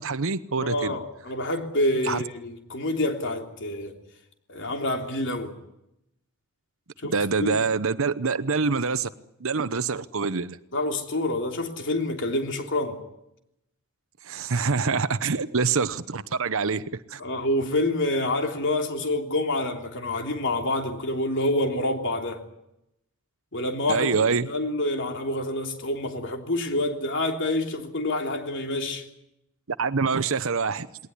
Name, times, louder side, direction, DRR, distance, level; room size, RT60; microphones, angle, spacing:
voice 1, 0.0-0.9 2.0-2.2 7.0-9.1 9.4-10.6 14.2-16.8 17.1-17.2 23.9-24.5 29.8-30.9, right 5 dB, 65° right, 0.9 m, -25 dB
voice 2, 0.6-3.9 4.5-5.5 7.0-7.6 10.7-13.0 17.2-22.4 23.5-29.0, left 1 dB, 55° left, 3.4 m, -27 dB
21.0 x 19.0 x 9.7 m
head